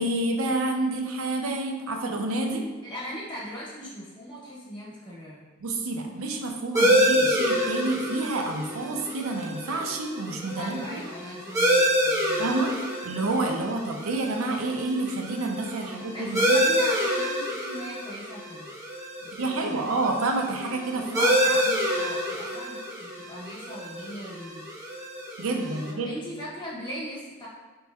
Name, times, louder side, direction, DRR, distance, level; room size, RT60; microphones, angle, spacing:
voice 1, 0.0-2.6 5.6-11.0 12.4-16.6 19.4-21.3 25.4-26.1, right 2 dB, 75° right, 3 dB, 0.5 m, -29 dB
voice 2, 2.8-5.5 10.6-12.6 15.8-18.7 19.2-19.9 20.9-24.7 25.7-27.5, equal, 20° left, -6 dB, 1.0 m, -39 dB
sound 1, 6.7-25.9, equal, 15° right, 0.7 m, -27 dB
4.1 x 3.0 x 2.3 m, 1.3 s
head